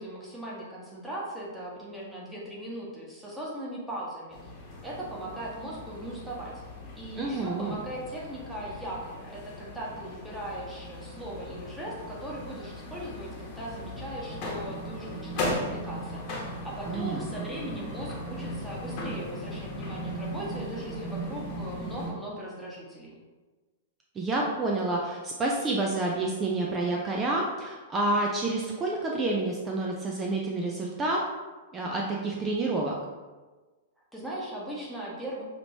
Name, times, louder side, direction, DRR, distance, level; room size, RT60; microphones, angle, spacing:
voice 1, 0.0-4.5 4.8-6.6 7.0-23.2 34.1-35.4, right 1 dB, 5° right, -6 dB, 1.2 m, -39 dB
sound 1, 4.3-22.1, equal, 40° left, 1.1 m, -38 dB
voice 2, 7.2-7.8 16.9-17.5 24.1-31.2 31.7-32.9, right 2 dB, 20° right, -1 dB, 0.5 m, -29 dB
5.1 x 3.1 x 2.8 m, 1.3 s
figure-of-eight pair, 105°, 0 cm